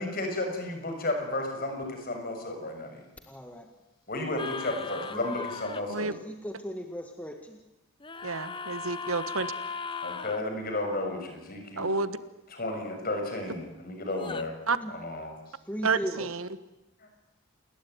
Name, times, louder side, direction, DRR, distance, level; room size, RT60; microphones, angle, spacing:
voice 1, 0.0-3.0 4.1-6.1 10.0-11.9 12.6-14.5 15.0-15.3, left 2 dB, 45° left, 4 dB, 6.7 m, -33 dB
voice 2, 3.3-3.7 5.1-5.5 6.1-7.6 14.7-14.9 15.7-16.3, equal, 5° left, 4 dB, 1.8 m, -37 dB
sound 1, 4.4-5.8 8.0-10.4 14.1-14.5, left 5 dB, 25° left, 1.1 m, -37 dB
voice 3, 8.2-9.5 11.8-12.2 14.7-14.8 15.8-16.5, right 4 dB, 80° right, 13 dB, 1.5 m, -29 dB
28.5 x 20.5 x 9.5 m, 0.98 s
head